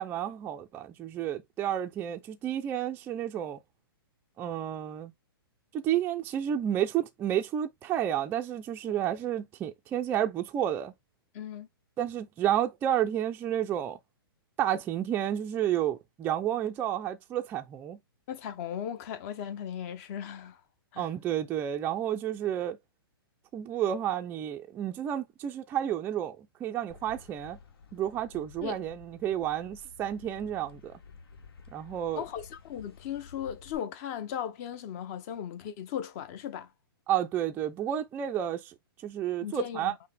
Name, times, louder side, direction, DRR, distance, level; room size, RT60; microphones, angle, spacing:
voice 1, 0.0-3.6 4.4-5.1 5.7-10.9 12.0-14.0 14.6-18.0 21.0-22.8 23.5-27.6 27.9-31.0 31.7-32.2 37.1-38.7 39.0-39.9, right 11 dB, 15° right, 0.4 m, -31 dB
voice 2, 11.3-11.7 18.3-20.6 20.9-21.1 28.6-28.8 32.1-36.7 39.4-40.0, left 9 dB, 40° left, 0.8 m, -37 dB
sound 1, 26.9-33.8, left 5 dB, 75° left, 1.2 m, -52 dB
5.5 x 2.1 x 3.4 m
hypercardioid pair, 140°, 13 cm